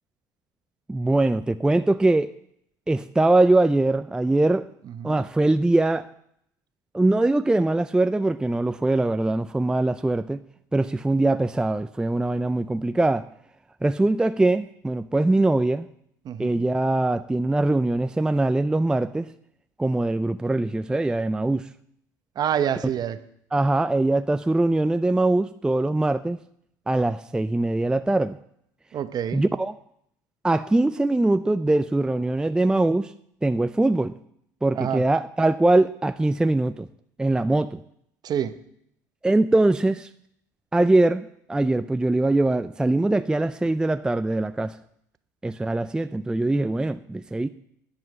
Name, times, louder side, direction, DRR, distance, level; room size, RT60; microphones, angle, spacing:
voice 1, 0.9-2.3 2.9-4.7 5.0-6.1 6.9-10.4 10.7-13.3 13.8-15.9 16.4-19.3 19.8-21.7 23.5-26.4 26.9-28.4 29.3-29.7 30.4-33.1 33.4-34.1 34.6-36.9 37.2-37.8 39.2-40.1 40.7-44.8 45.4-47.5, right 2 dB, 10° right, 12 dB, 0.4 m, -22 dB
voice 2, 16.2-16.6 22.4-23.2 28.9-29.4 34.7-35.0 38.2-38.5, right 9 dB, 45° right, 12 dB, 0.9 m, -27 dB
10.5 x 5.6 x 7.7 m, 0.72 s
hypercardioid pair, 75°, 9 cm